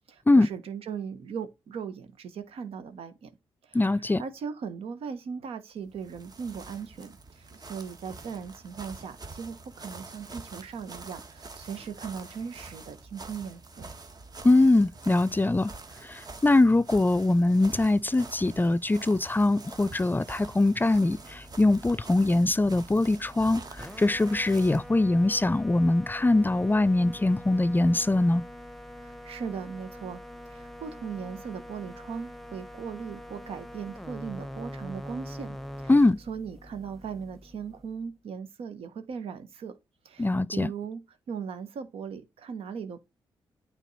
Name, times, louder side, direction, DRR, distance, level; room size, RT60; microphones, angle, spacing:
voice 1, 0.1-3.3 3.6-3.8 4.2-13.9 29.0-35.9 36.3-39.8 40.0-41.0 41.3-43.0, right 6 dB, 70° right, 1.2 m, -38 dB
voice 2, 3.7-4.2 14.4-15.7 16.0-28.4 35.9-36.2 40.2-40.7, left 2 dB, 20° left, 0.4 m, -22 dB
sound 1, 5.8-24.9, right 3 dB, 40° right, 1.4 m, -46 dB
sound 2, 20.9-38.1, equal, ahead, 1.0 m, -44 dB
9.1 x 3.7 x 4.1 m
supercardioid pair, 50°, 10 cm